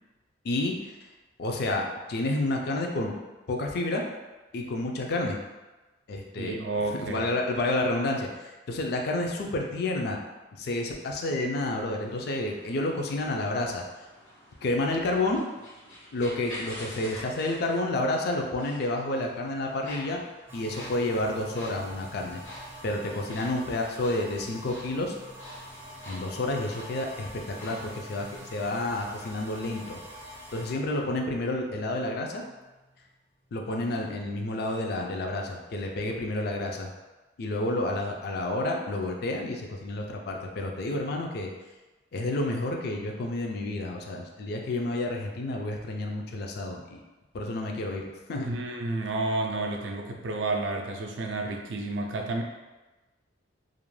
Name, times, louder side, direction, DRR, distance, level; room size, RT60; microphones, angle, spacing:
voice 1, 1.4-3.1 3.5-4.0 4.5-5.4 6.1-6.6 7.0-10.2 10.5-13.8 14.6-15.4 16.1-20.2 20.5-22.4 22.8-25.1 26.1-30.0 30.5-32.4 33.5-36.9 37.4-41.5 42.1-47.0 47.3-48.0 48.3-48.5, left 2 dB, 60° left, 1 dB, 0.4 m, -30 dB
voice 2, 6.4-7.3 48.4-52.4, right 2 dB, 75° right, 2 dB, 0.4 m, -31 dB
sound 1, 11.6-29.3, equal, 85° left, 1.2 m, -48 dB
sound 2, 20.5-33.2 33.5-35.9, equal, 15° right, 0.4 m, -47 dB
2.5 x 2.1 x 3.1 m, 1.2 s
head